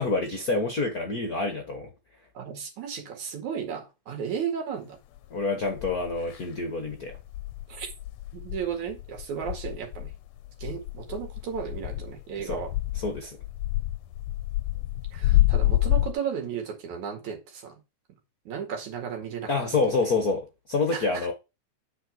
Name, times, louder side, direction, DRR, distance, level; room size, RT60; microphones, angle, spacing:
voice 1, 0.0-1.9 5.3-7.2 12.4-12.6 13.0-13.4 19.5-21.3, left 3 dB, 45° left, 1.2 m, -27 dB
voice 2, 2.3-5.0 7.7-7.9 8.3-10.1 10.6-12.7 15.1-17.8 18.4-19.7 20.9-21.3, right 7 dB, 75° right, 3.4 m, -34 dB
sound 1, 5.2-5.3 5.7-6.4 6.9-16.1, left 15 dB, 75° left, 1.9 m, -28 dB
8.6 x 4.9 x 5.1 m
omnidirectional pair, 3.4 m